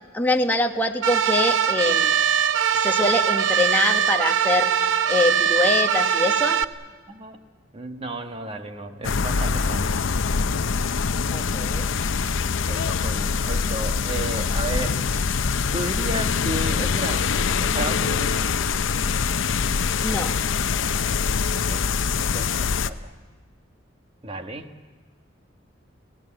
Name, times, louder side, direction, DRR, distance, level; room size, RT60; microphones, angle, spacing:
voice 1, 0.1-2.1 2.7-4.7 5.1-6.6 11.3-11.9 20.0-20.4, left 2 dB, 10° left, 3 dB, 1.2 m, -24 dB
sound 1, 1.0-6.6, right 7 dB, 70° right, 0.7 m, -21 dB
voice 2, 7.1-7.4 7.7-10.1 12.6-15.4 15.7-18.6 21.5-23.1 24.2-24.7, right 1 dB, 30° right, 6 dB, 1.4 m, -33 dB
sound 2, 9.0-22.9, left 5 dB, 70° left, 0.7 m, -24 dB
28.5 x 17.5 x 9.0 m, 1.4 s
head